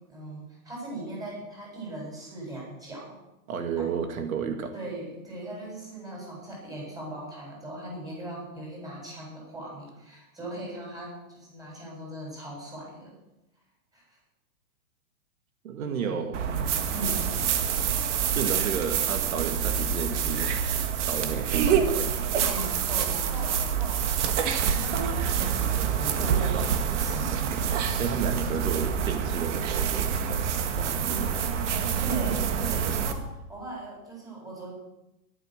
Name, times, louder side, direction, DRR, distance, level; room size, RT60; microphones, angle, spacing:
voice 1, 0.1-3.2 3.8-3.9 4.7-13.2 13.9-14.2 15.8-17.3 22.5-27.4 30.9-31.5 32.0-34.7, right 1 dB, 10° right, -3 dB, 7.5 m, -39 dB
voice 2, 3.5-4.7 15.6-16.4 18.4-20.5 21.1-22.2 26.5-26.7 28.0-30.4 30.8-31.4, right 7 dB, 75° right, 6 dB, 2.2 m, -32 dB
sound 1, 16.3-33.1, right 7 dB, 55° right, 2.1 m, -27 dB
14.0 x 12.5 x 6.6 m, 0.89 s
hypercardioid pair, 155°, 42 cm